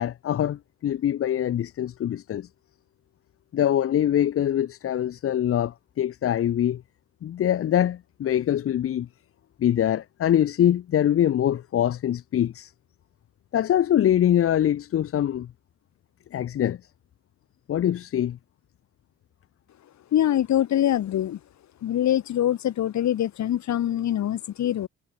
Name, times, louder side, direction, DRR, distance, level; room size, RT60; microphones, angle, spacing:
voice 1, 0.0-2.5 3.5-6.8 7.2-9.1 9.6-12.7 13.5-15.5 16.3-16.8 17.7-18.4, left 11 dB, 50° left, 0.7 m, -23 dB
voice 2, 20.1-21.4 21.8-24.9, left 11 dB, 65° left, 1.8 m, -24 dB
cardioid pair, 90°, 30 cm